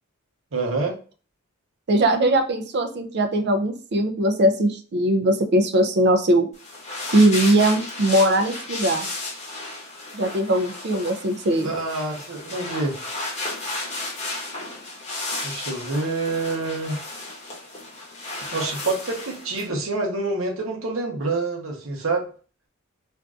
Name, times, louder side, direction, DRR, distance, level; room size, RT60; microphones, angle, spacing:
voice 1, 0.5-1.0 11.6-13.0 15.4-17.0 18.5-22.3, right 3 dB, 65° right, 1 dB, 0.9 m, -27 dB
voice 2, 1.9-6.5 7.1-9.1 10.1-11.7, right 1 dB, 50° right, 7 dB, 0.5 m, -20 dB
sound 1, 6.5-19.7, left 2 dB, 35° left, 1.0 m, -33 dB
3.7 x 2.6 x 2.3 m, 0.38 s
head